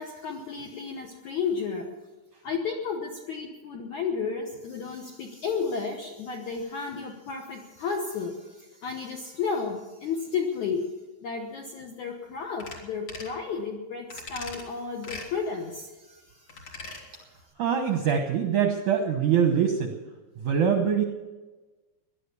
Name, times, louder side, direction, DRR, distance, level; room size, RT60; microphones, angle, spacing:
voice 1, 0.0-1.9 2.4-10.9 11.2-16.6, left 5 dB, 70° left, 1 dB, 1.8 m, -32 dB
sound 1, 12.6-12.8 13.1-13.4 14.1-14.6 15.0-15.3 16.5-17.0 17.4-17.5, left 3 dB, 40° left, 3.1 m, -40 dB
voice 2, 17.6-20.0 20.4-21.0, right 7 dB, 75° right, 4 dB, 1.8 m, -24 dB
18.0 x 11.5 x 7.0 m, 1.2 s
omnidirectional pair, 5.0 m